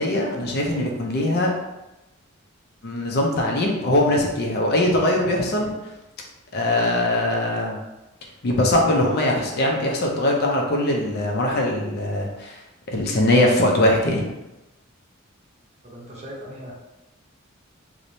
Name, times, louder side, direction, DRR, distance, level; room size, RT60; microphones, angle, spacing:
voice 1, 0.0-1.5 2.8-5.7 6.5-7.8 8.4-12.6 12.9-14.3, left 1 dB, 50° left, 0 dB, 0.4 m, -21 dB
voice 2, 15.8-16.7, equal, 30° right, -5 dB, 0.7 m, -38 dB
3.0 x 2.0 x 2.6 m, 0.99 s
head